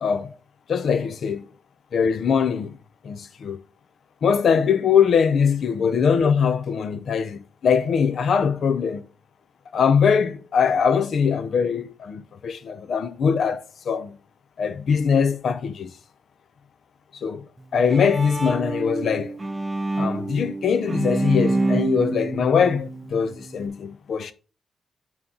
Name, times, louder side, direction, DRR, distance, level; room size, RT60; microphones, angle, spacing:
voice 1, 0.0-0.3 0.7-1.5 1.9-2.8 3.0-3.6 4.2-9.1 9.7-14.2 14.6-15.9 17.2-17.4 17.7-19.4 20.0-24.3, left 6 dB, 65° left, 0.6 m, -22 dB
Bowed string instrument, 17.6-23.7, right 2 dB, 20° right, 0.7 m, -27 dB
9.3 x 3.1 x 5.0 m
cardioid pair, 115°, 0 cm